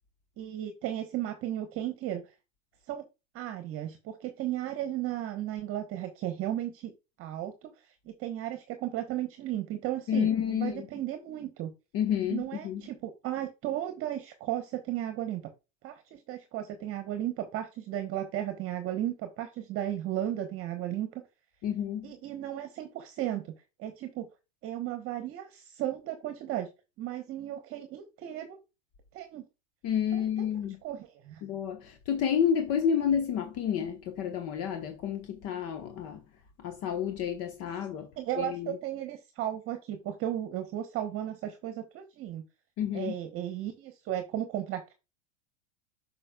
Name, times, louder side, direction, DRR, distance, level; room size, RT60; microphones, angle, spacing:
voice 1, 0.4-2.2 2.9-3.0 3.3-6.9 7.2-7.7 8.1-11.7 12.3-15.5 15.8-21.2 22.0-23.5 23.8-24.3 24.6-26.7 27.0-28.6 29.1-29.5 30.1-30.5 30.8-31.4 38.2-42.4 42.9-44.9, right 12 dB, 35° right, 1.1 m, -35 dB
voice 2, 10.1-10.9 11.9-12.8 21.6-22.1 29.8-30.8 31.4-36.2 36.6-38.1 38.4-38.8 42.8-43.2, left 8 dB, 40° left, 1.2 m, -30 dB
7.7 x 5.7 x 2.3 m
hypercardioid pair, 105°, 36 cm